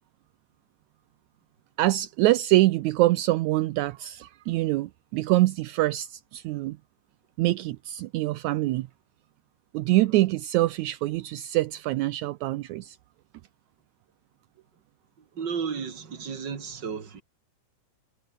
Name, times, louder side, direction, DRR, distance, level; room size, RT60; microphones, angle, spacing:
voice 1, 1.8-6.8 7.4-8.9 9.7-13.0, right 17 dB, 80° right, 2.0 m, -24 dB
voice 2, 15.3-17.2, right 6 dB, 35° right, 2.9 m, -33 dB
omnidirectional pair, 3.6 m